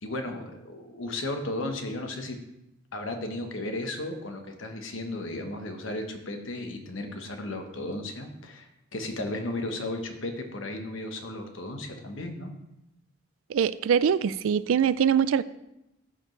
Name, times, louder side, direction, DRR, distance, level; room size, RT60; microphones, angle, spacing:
voice 1, 0.0-2.4 2.9-12.5, left 1 dB, 70° left, 5 dB, 1.1 m, -35 dB
voice 2, 13.5-15.4, right 7 dB, 80° right, 17 dB, 0.3 m, -23 dB
14.0 x 5.0 x 3.2 m, 0.88 s
head